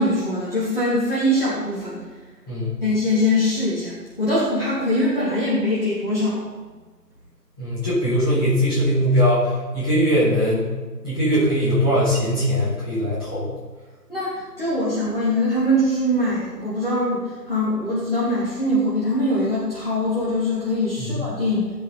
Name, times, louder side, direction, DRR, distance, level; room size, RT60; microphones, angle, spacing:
voice 1, 0.0-2.0 2.8-6.5 14.1-21.7, left 1 dB, 35° left, -9 dB, 2.9 m, -22 dB
voice 2, 2.5-2.8 7.6-10.7 11.0-13.5 21.0-21.1, equal, 15° left, -14 dB, 3.8 m, -21 dB
15.5 x 7.7 x 4.1 m, 1.3 s
figure-of-eight pair, 180°, 49 cm